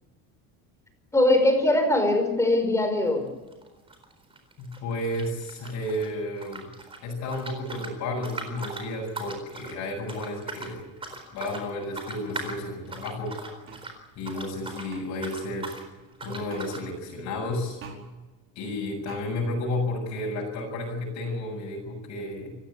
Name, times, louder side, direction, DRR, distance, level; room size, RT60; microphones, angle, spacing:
voice 1, 1.1-3.3, left 1 dB, 10° left, 6 dB, 4.9 m, -21 dB
sound 1, 3.1-3.3 3.5-6.1 6.4-14.9 15.2-15.9 16.2-16.9, right 3 dB, 15° right, 4.2 m, -40 dB
voice 2, 4.6-6.7 7.0-10.9 11.3-13.3 14.2-15.7 16.2-17.8 18.6-22.6, left 1 dB, 50° left, -3 dB, 7.3 m, -32 dB
sound 2, 13.7-13.8 14.9-15.0 16.5-16.7 17.8-18.0 19.1-19.2, right 6 dB, 35° right, 5.0 m, -43 dB
29.0 x 16.0 x 8.6 m, 1.1 s
cardioid pair, 180°, 35 cm